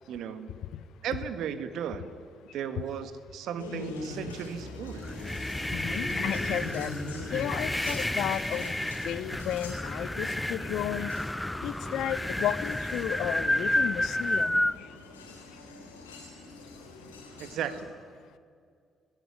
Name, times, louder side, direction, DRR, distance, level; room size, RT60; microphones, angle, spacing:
voice 1, 0.1-0.5 1.0-2.1 2.5-5.0 17.4-17.9, right 8 dB, 65° right, 11 dB, 1.6 m, -35 dB
sound 1, 3.6-17.8, left 2 dB, 85° left, 3.2 m, -42 dB
sound 2, 5.0-14.8, left 1 dB, 10° left, 0.5 m, -31 dB
voice 2, 5.7-6.9 7.3-11.1 11.6-14.6, left 11 dB, 65° left, 17 dB, 0.8 m, -33 dB
19.5 x 18.5 x 9.8 m, 2.2 s
hypercardioid pair, 45°, 0 cm